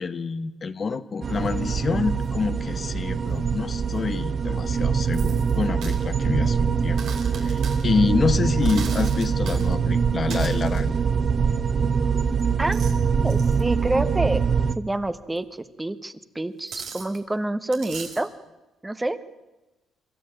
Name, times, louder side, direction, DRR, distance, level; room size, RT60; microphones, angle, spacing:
voice 1, 0.0-7.0 7.4-10.9, left 5 dB, 40° left, 12 dB, 0.9 m, -27 dB
sound 1, 1.2-14.7, right 6 dB, 45° right, 1.0 m, -23 dB
sound 2, 1.4-1.5 2.2-2.3 3.9-4.0 5.1-6.0 7.0-7.8 8.6-9.8 10.3-11.0 12.4-13.0 13.3-13.6 15.4-15.5 16.7-17.2 17.7-18.3, right 6 dB, 75° right, 3.4 m, -39 dB
voice 2, 13.2-14.4 14.8-18.3 18.8-19.2, right 2 dB, 15° right, 12 dB, 1.1 m, -27 dB
24.5 x 13.0 x 8.8 m, 1.0 s
cardioid pair, 90°, 0 cm